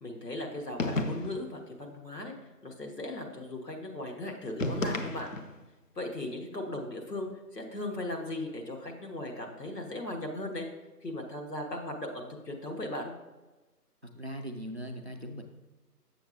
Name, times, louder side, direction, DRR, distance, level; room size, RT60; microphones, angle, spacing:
voice 1, 0.0-2.3 2.6-5.3 5.9-10.7 11.0-13.1, left 1 dB, 80° left, 1 dB, 1.5 m, -37 dB
sound 1, 0.8-1.5 4.6-5.6, left 2 dB, 55° left, 0.6 m, -32 dB
voice 2, 14.2-15.4, equal, 45° right, 4 dB, 0.4 m, -39 dB
6.9 x 6.7 x 2.6 m, 1.1 s
figure-of-eight pair, 160°, 48 cm